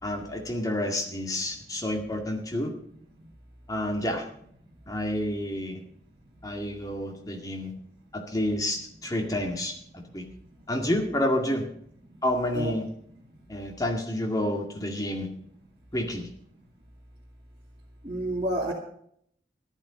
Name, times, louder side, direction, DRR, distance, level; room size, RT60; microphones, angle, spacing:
voice 1, 0.0-2.7 3.7-4.2 4.9-5.8 6.4-7.7 8.1-9.8 10.1-10.2 10.7-11.7 12.2-12.9 13.5-15.3 15.9-16.3, left 1 dB, 20° left, 3 dB, 2.1 m, -29 dB
voice 2, 18.0-18.7, right 1 dB, 30° right, -4 dB, 2.2 m, -30 dB
14.0 x 11.5 x 5.1 m, 0.67 s
head